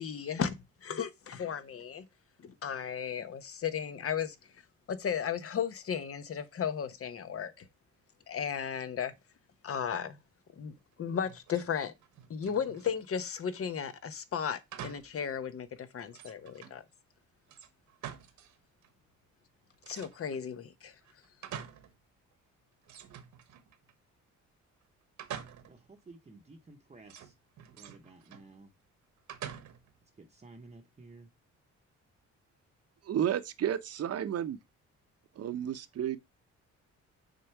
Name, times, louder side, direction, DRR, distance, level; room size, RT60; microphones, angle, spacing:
voice 1, 0.0-2.1 2.4-4.4 4.9-7.7 8.3-9.1 9.6-10.2 10.5-11.9 12.3-16.8 19.9-21.0, left 7 dB, 50° left, 1.0 m, -35 dB
sound 1, 11.2-11.7 12.0-13.1 14.7-15.2 15.6-15.7 16.1-16.8 17.5-18.6 18.8-18.9 19.8-20.5 21.0-22.0 22.3-22.4 22.8-23.9 25.2-25.9 27.1-28.5 29.3-30.0, right 9 dB, 75° right, 1.2 m, -46 dB
voice 2, 25.7-27.4 27.7-28.7 30.2-31.3, right 3 dB, 20° right, 0.9 m, -53 dB
voice 3, 33.0-34.6 35.4-36.2, right 10 dB, 55° right, 0.8 m, -32 dB
6.5 x 3.8 x 4.5 m
cardioid pair, 90°, 30 cm